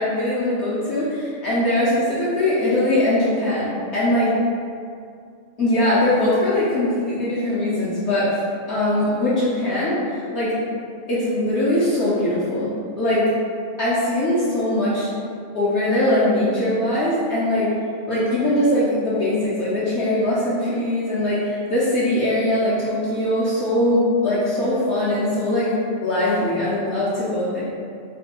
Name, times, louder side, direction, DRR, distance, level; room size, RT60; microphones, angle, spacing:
voice 1, 0.0-4.3 5.6-8.4 8.7-10.5 11.1-12.7 13.0-13.2 13.8-15.1 15.5-17.7 18.1-25.7 26.0-27.6, left 1 dB, 65° left, -10 dB, 0.9 m, -21 dB
3.2 x 2.2 x 2.9 m, 2.3 s
omnidirectional pair, 1.4 m